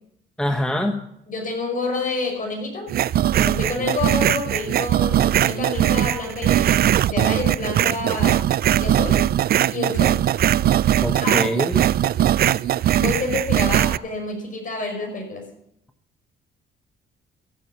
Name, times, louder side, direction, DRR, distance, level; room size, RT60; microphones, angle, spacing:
voice 1, 0.4-1.0 11.0-11.8, left 1 dB, 5° left, 5 dB, 1.1 m, -24 dB
voice 2, 1.3-2.9 3.3-8.5 8.8-9.3 9.7-10.2 11.1-11.5 13.0-15.5, left 3 dB, 40° left, 2 dB, 5.5 m, -28 dB
sound 1, 2.9-14.0, right 12 dB, 50° right, 0.4 m, -20 dB
14.5 x 7.7 x 7.0 m, 0.76 s
cardioid pair, 90°, 20 cm